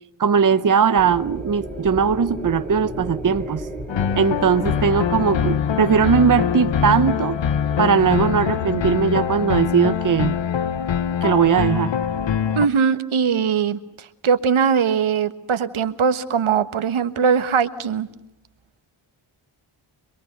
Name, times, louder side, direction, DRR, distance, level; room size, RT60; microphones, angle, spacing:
voice 1, 0.2-3.7 4.1-7.4 7.8-10.4 11.2-11.9, right 6 dB, 40° right, 0.9 m, -19 dB
sound 1, 1.0-9.1, equal, 5° left, 3.2 m, -35 dB
sound 2, 3.9-12.7, left 8 dB, 65° left, 1.0 m, -23 dB
voice 2, 12.6-18.1, right 6 dB, 80° right, 1.4 m, -21 dB
26.5 x 22.5 x 6.7 m
wide cardioid pair, 90°, 48 cm